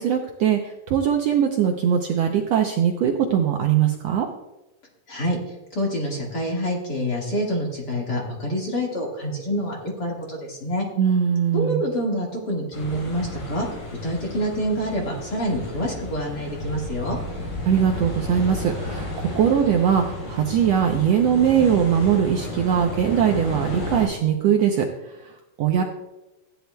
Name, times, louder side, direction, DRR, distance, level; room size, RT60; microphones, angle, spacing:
voice 1, 0.0-4.3 11.0-11.9 17.6-25.8, right 8 dB, 85° right, 3 dB, 1.4 m, -21 dB
voice 2, 5.1-10.8 11.5-13.7 14.0-17.2, equal, 35° left, -2 dB, 2.0 m, -27 dB
sound 1, 12.7-24.1, left 1 dB, 85° left, 5.4 m, -33 dB
15.5 x 10.5 x 2.3 m, 1.0 s
omnidirectional pair, 3.8 m